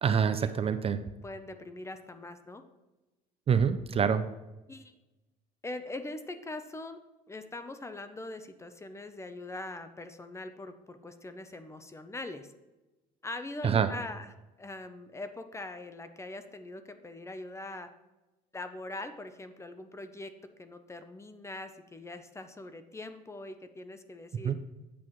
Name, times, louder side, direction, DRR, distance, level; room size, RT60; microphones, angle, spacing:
voice 1, 0.0-1.0 3.5-4.2 13.6-13.9 24.4-24.6, right 7 dB, 35° right, 11 dB, 0.4 m, -26 dB
voice 2, 1.2-2.6 4.7-4.9 5.6-7.0 7.3-12.5 13.2-17.9 18.5-20.3 20.6-24.5, left 2 dB, 15° left, 9 dB, 0.6 m, -42 dB
8.6 x 7.3 x 3.1 m, 1.1 s
cardioid pair, 110°, 17 cm